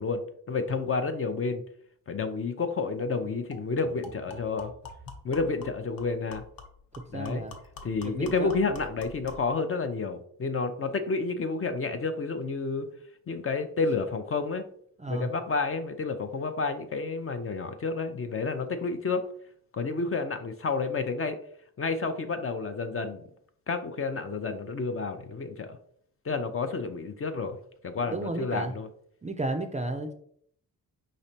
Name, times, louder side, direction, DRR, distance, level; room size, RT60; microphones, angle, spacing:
voice 1, 0.0-1.6 2.1-4.7 5.2-6.4 7.1-7.4 7.8-12.9 13.3-14.6 15.1-19.2 19.7-21.4 21.8-23.2 23.7-25.8 26.2-27.6 27.8-28.9, left 4 dB, 35° left, 8 dB, 0.5 m, -30 dB
sound 1, 2.6-2.7 3.0-3.1 3.5-9.5, left 3 dB, 65° left, 0.9 m, -47 dB
voice 2, 7.1-7.6 8.0-8.6 15.0-15.3 28.0-28.7 29.2-30.1, right 2 dB, 20° right, 6 dB, 0.4 m, -33 dB
5.0 x 3.2 x 2.7 m, 0.64 s
cardioid pair, 85°, 38 cm